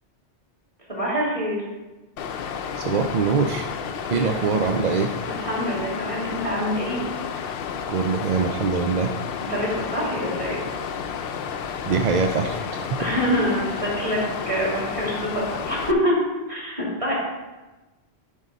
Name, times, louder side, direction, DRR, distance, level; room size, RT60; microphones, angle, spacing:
voice 1, 0.9-1.6 4.1-4.4 4.9-7.0 9.4-10.6 13.0-14.2 14.5-16.2 16.5-17.1, equal, 30° right, -5 dB, 3.0 m, -26 dB
Water, 2.2-15.9, left 7 dB, 65° left, 0.8 m, -31 dB
voice 2, 2.8-3.7 4.1-5.1 7.9-9.1 11.8-12.9, right 5 dB, 50° right, 4 dB, 0.5 m, -23 dB
10.0 x 5.4 x 5.2 m, 1.1 s
omnidirectional pair, 1.1 m